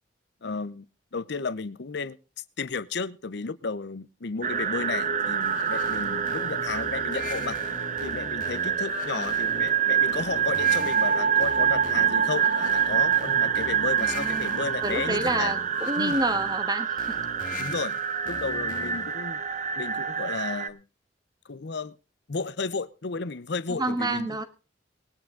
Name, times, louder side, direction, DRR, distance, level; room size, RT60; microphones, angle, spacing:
voice 1, 0.4-0.9 1.1-7.6 8.0-15.6 16.0-16.2 17.6-19.4 19.8-20.8 21.4-22.0 22.3-24.4, left 4 dB, 65° left, 0.7 m, -33 dB
sound 1, 4.4-20.7, right 8 dB, 40° right, 0.7 m, -26 dB
sound 2, 5.4-19.2, left 4 dB, 45° left, 1.5 m, -40 dB
voice 2, 14.0-17.2 23.7-24.4, right 2 dB, 20° right, 1.4 m, -29 dB
19.5 x 9.7 x 3.7 m
head